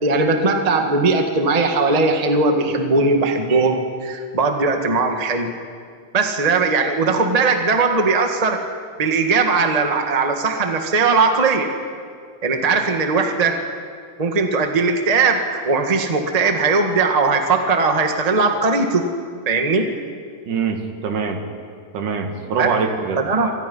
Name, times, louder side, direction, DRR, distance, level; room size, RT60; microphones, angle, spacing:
voice 1, 0.0-5.5 6.1-8.6 9.0-11.7 12.4-13.6 14.2-19.1 19.4-19.9 22.6-22.7 23.2-23.5, right 4 dB, 15° right, 4 dB, 1.3 m, -19 dB
voice 2, 20.5-21.4 21.9-23.2, right 5 dB, 75° right, 4 dB, 3.6 m, -23 dB
29.5 x 25.5 x 5.6 m, 2.1 s
omnidirectional pair, 3.7 m